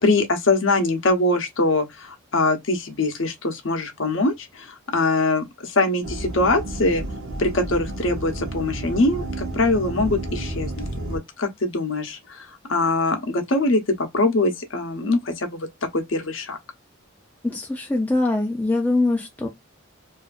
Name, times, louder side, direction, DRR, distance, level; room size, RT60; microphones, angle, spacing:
voice 1, 0.0-7.0 7.4-15.7 15.9-16.6, left 2 dB, 65° left, 0.8 m, -23 dB
sound 1, 6.0-11.2, right 1 dB, 85° right, 0.8 m, -31 dB
voice 2, 17.4-19.5, left 2 dB, 10° left, 0.4 m, -23 dB
2.7 x 2.4 x 2.3 m
head